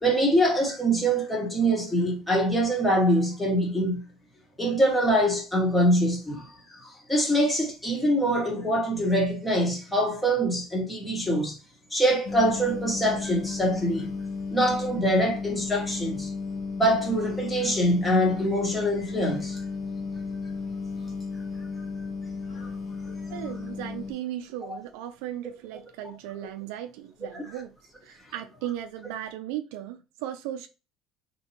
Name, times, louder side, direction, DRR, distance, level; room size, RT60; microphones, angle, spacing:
voice 1, 0.0-4.0 4.6-11.6 11.9-14.1 14.5-16.3 16.8-19.6 22.5-22.7 23.0-23.1 24.6-24.8 27.3-27.4, equal, 10° left, 1.3 m, -24 dB
sound 1, 12.2-24.1, left 4 dB, 55° left, 0.9 m, -34 dB
voice 2, 23.3-27.7 28.0-30.7, right 12 dB, 90° right, 0.4 m, -36 dB
4.4 x 2.9 x 2.9 m
cardioid pair, 140°, 0 cm